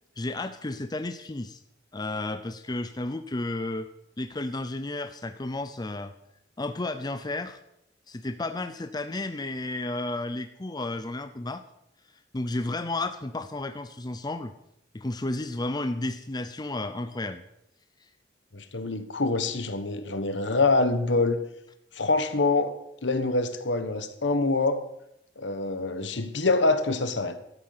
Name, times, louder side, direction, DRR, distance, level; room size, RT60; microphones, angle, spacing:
voice 1, 0.2-1.6 1.9-3.9 4.2-6.1 6.6-7.6 8.1-11.6 12.3-14.5 14.9-17.4, left 2 dB, 20° left, 9 dB, 0.6 m, -32 dB
voice 2, 18.5-21.4 22.0-22.7 23.0-24.8 25.4-27.4, left 3 dB, 70° left, 10 dB, 1.3 m, -25 dB
13.0 x 9.5 x 6.7 m, 0.80 s
head